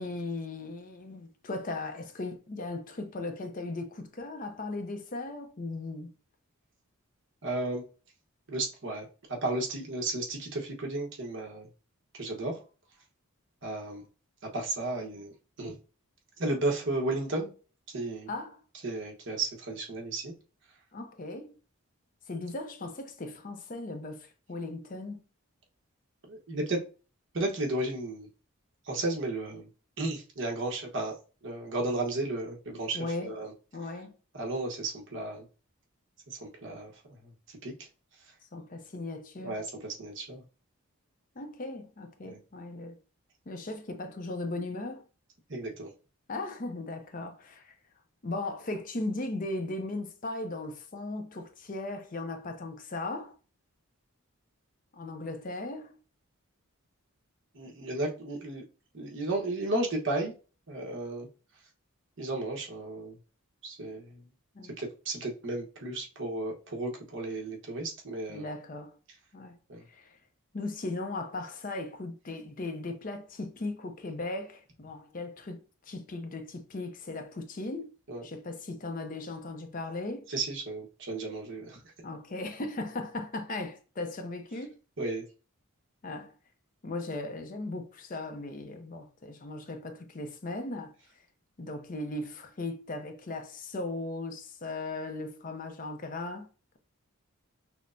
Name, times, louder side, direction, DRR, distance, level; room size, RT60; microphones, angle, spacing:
voice 1, 0.0-6.1 18.3-18.6 20.9-21.6 22.3-25.2 32.9-33.3 33.7-34.1 38.5-39.6 41.4-43.0 43.5-45.0 46.3-47.7 48.2-53.4 54.9-56.0 64.5-64.8 68.3-69.0 69.3-69.6 69.9-70.2 70.5-77.9 78.2-80.3 82.0-84.8 86.0-86.3 86.8-90.9 91.6-96.5, left 2 dB, 40° left, 0.5 m, -37 dB
voice 2, 7.4-7.8 8.5-11.7 12.1-12.6 13.6-14.0 14.4-15.3 15.6-15.8 16.4-17.5 17.9-18.3 18.8-20.3 26.3-26.8 27.3-28.3 28.8-29.7 30.0-31.2 31.4-33.5 34.3-35.5 36.3-36.9 37.5-37.7 39.4-40.4 42.2-42.4 45.5-45.9 57.5-58.6 58.9-60.3 60.7-61.3 62.2-63.2 63.6-64.2 64.8-68.5 69.7-69.8 78.1-78.2 80.3-81.8 85.0-85.2, right 2 dB, 55° right, 1.1 m, -33 dB
6.0 x 2.1 x 2.6 m
head